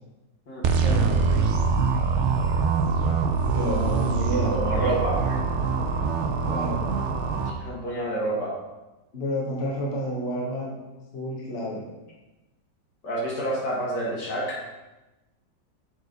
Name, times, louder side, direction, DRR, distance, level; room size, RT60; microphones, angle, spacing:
sound 1, 0.6-7.5, right 5 dB, 70° right, 0.6 m, -24 dB
voice 1, 0.8-1.2 3.5-4.5 6.5-6.8 9.1-10.7 11.1-11.9, equal, 35° left, -4 dB, 1.4 m, -29 dB
voice 2, 4.5-5.2 7.5-8.5 13.0-14.6, right 1 dB, 65° left, -6 dB, 2.6 m, -28 dB
7.4 x 4.8 x 4.0 m, 1.1 s
omnidirectional pair, 2.0 m